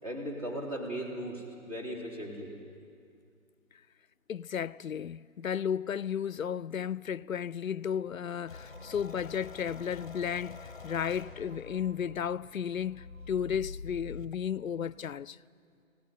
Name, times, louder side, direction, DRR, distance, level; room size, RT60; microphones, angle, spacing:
voice 1, 0.0-2.6, right 1 dB, 25° right, 3.6 m, -37 dB
voice 2, 4.3-15.4, left 8 dB, 70° left, 0.5 m, -34 dB
sound 1, 8.5-14.4, left 4 dB, 35° left, 0.9 m, -46 dB
20.5 x 18.5 x 9.5 m
hypercardioid pair, 175°, 42 cm